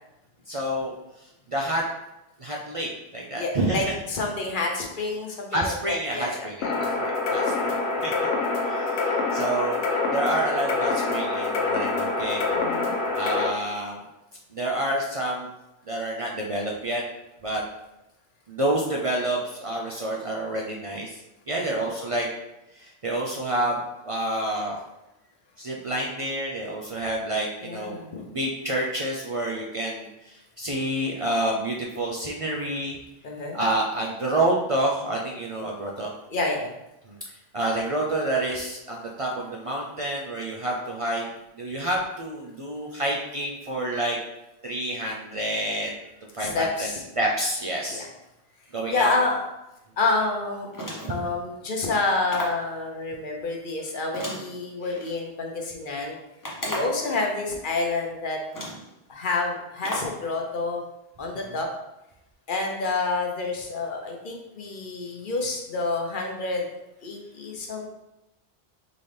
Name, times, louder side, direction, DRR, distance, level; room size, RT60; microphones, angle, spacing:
voice 1, 0.5-0.9 1.5-1.8 2.4-3.8 5.5-7.7 8.0-8.1 8.6-9.8 10.1-12.4 13.1-14.0 14.5-15.5 15.9-17.0 17.4-17.6 18.5-21.1 21.5-22.3 22.8-23.8 24.1-24.8 25.6-32.9 33.5-36.1 37.1-37.2 37.5-41.2 41.6-44.2 44.6-45.9 46.3-46.9 47.2-48.0 48.7-49.1, right 1 dB, 40° right, -2 dB, 0.5 m, -28 dB
voice 2, 3.3-6.5 12.5-13.0 21.5-21.8 27.6-28.2 33.2-33.6 36.3-36.7 46.4-47.0 47.9-48.1 48.9-49.4 50.0-50.7 51.1-56.2 56.6-58.4 59.1-60.8 61.2-61.7 62.5-66.7 67.0-67.9, left 3 dB, 55° left, 1 dB, 0.9 m, -28 dB
sound 1, 6.6-13.5, left 3 dB, 90° left, 1.0 m, -26 dB
sound 2, 50.7-51.3 52.3-52.7 54.1-55.1 56.4-57.1 58.0-58.1 58.5-58.9 59.8-60.2, equal, 20° left, 0.9 m, -34 dB
4.1 x 3.8 x 3.3 m, 0.92 s
omnidirectional pair, 1.0 m